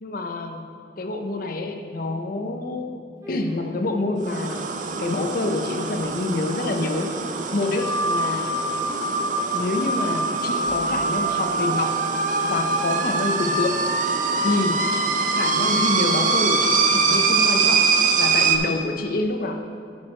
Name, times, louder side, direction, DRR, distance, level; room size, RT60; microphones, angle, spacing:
voice 1, 0.0-3.0 3.3-4.6 5.0-7.1 7.5-8.6 9.5-12.1 12.4-13.8 14.4-14.9 15.3-17.9 18.2-19.6, left 2 dB, 55° left, 5 dB, 0.6 m, -27 dB
sound 1, 3.2-3.9 5.2-6.1 6.7-7.4 8.7-9.2 9.5-9.6 10.4-11.1 12.3-13.0 14.1-14.8 15.8-16.6, equal, 20° right, 1.8 m, -43 dB
sound 2, 4.2-18.6, right 5 dB, 45° right, 0.5 m, -25 dB
Wind instrument woodwind instrument, 7.7-17.4, equal, 15° left, 1.3 m, -26 dB
10.5 x 4.7 x 4.3 m, 2.4 s
head